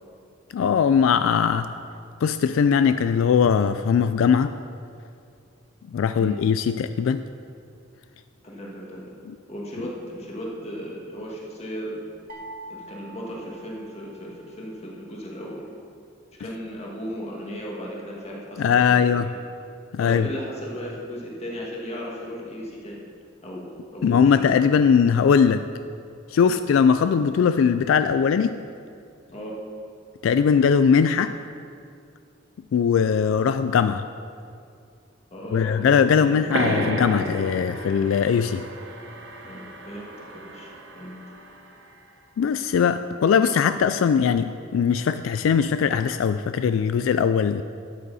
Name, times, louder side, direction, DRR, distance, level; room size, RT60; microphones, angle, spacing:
voice 1, 0.5-1.7 2.2-4.6 5.9-7.2 18.6-19.3 19.9-20.3 24.0-25.7 26.3-28.6 30.2-31.3 32.7-34.0 35.5-38.6 42.4-47.6, left 6 dB, 85° left, 11 dB, 0.3 m, -20 dB
voice 2, 8.4-9.1 9.5-12.0 12.7-15.6 16.4-19.3 20.0-23.0 23.4-23.7 23.9-24.4 26.4-26.6 29.3-29.5 35.3-36.5 39.4-41.2, equal, 30° left, -3 dB, 1.9 m, -36 dB
sound 1, 12.3-14.4, right 2 dB, 45° right, 1.3 m, -43 dB
sound 2, 36.5-41.7, right 1 dB, 65° right, 1.0 m, -32 dB
12.5 x 8.0 x 4.1 m, 2.4 s
head